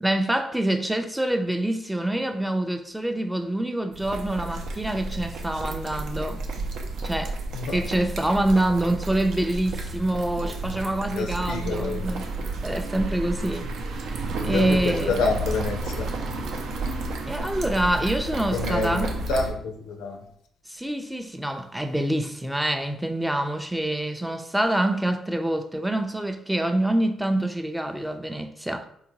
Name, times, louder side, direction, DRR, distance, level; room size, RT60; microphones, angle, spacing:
voice 1, 0.0-6.4 7.0-7.4 7.7-12.3 12.6-13.7 14.4-15.2 17.3-19.1 20.7-28.9, right 1 dB, 5° right, 0.4 m, -26 dB
sound 1, 3.9-19.5, right 2 dB, 75° right, 0.5 m, -31 dB
voice 2, 11.1-12.1 14.5-16.1 18.5-20.2, left 3 dB, 85° left, 0.5 m, -28 dB
3.6 x 2.1 x 3.0 m
supercardioid pair, 65°, 0 cm